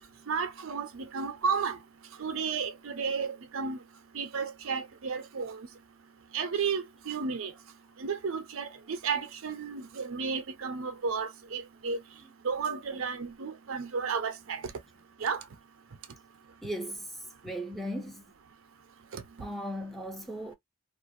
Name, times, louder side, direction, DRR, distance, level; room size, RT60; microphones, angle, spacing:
voice 1, 0.3-1.8 2.2-3.8 4.1-5.6 6.3-7.5 8.0-12.0 12.4-14.6 15.2-15.4, right 5 dB, 70° right, 0.5 m, -32 dB
voice 2, 16.6-17.1 17.4-18.2 19.4-20.5, equal, ahead, 0.5 m, -37 dB
2.4 x 2.1 x 2.5 m
head